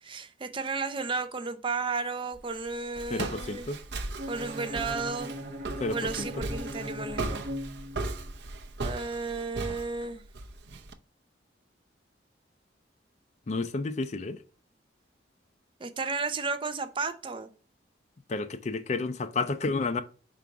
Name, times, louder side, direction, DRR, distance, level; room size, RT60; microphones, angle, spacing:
voice 1, 0.0-3.7 4.0-5.3 5.9-7.4 8.8-10.2 15.8-17.5, right 4 dB, 25° right, 0.5 m, -33 dB
Walk footsteps, 2.3-10.9, right 2 dB, 60° right, 0.7 m, -37 dB
voice 2, 3.1-3.8 5.8-6.3 13.5-14.4 18.3-20.0, left 3 dB, 35° left, 0.4 m, -31 dB
Bowed string instrument, 4.2-8.3, equal, 45° right, 1.3 m, -39 dB
5.7 x 3.8 x 4.6 m
head